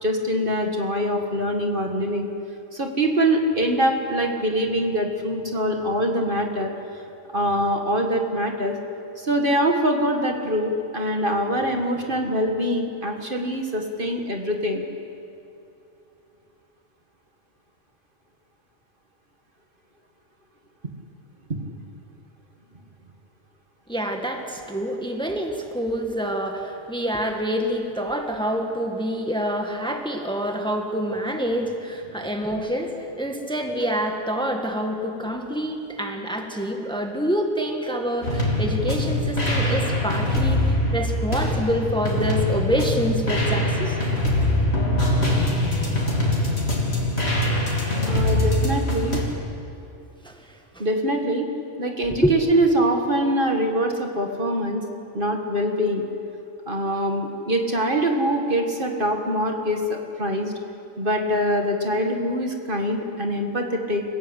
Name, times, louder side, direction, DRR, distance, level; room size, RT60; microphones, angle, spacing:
voice 1, 0.0-2.3 2.7-6.7 7.3-8.8 9.2-14.8 21.5-21.8 48.1-49.2 50.8-51.5 51.8-54.8 55.1-56.0 56.7-60.5 61.0-64.0, equal, 45° right, 2 dB, 2.0 m, -24 dB
voice 2, 23.9-44.0 50.2-50.3 50.7-50.8 52.2-52.3, equal, 5° left, 3 dB, 1.8 m, -26 dB
sound 1, 38.2-49.2, left 1 dB, 55° left, 3.8 m, -23 dB
29.0 x 15.5 x 8.3 m, 2.7 s
omnidirectional pair, 1.3 m